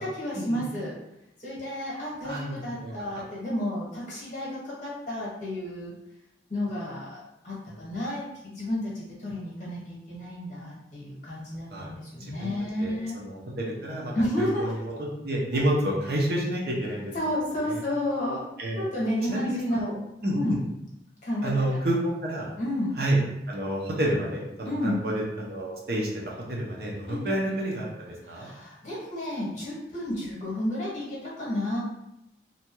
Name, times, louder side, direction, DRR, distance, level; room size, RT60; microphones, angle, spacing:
voice 1, 0.0-0.9 1.4-5.9 6.5-8.3 8.5-13.2 14.1-14.7 17.1-18.4 18.7-19.9 20.3-20.6 21.2-21.8 22.6-23.0 24.6-25.0 27.1-27.3 28.3-31.8, left 1 dB, 45° left, -6 dB, 1.1 m, -31 dB
voice 2, 2.2-2.9 7.7-7.8 11.7-11.9 12.2-12.5 12.8-14.1 14.4-14.9 15.2-17.2 17.7-17.8 18.6-18.8 19.3-19.9 20.2-20.6 21.4-22.5 23.0-23.2 23.5-28.5, right 1 dB, 55° right, -3 dB, 0.7 m, -29 dB
2.7 x 2.2 x 2.9 m, 0.84 s
head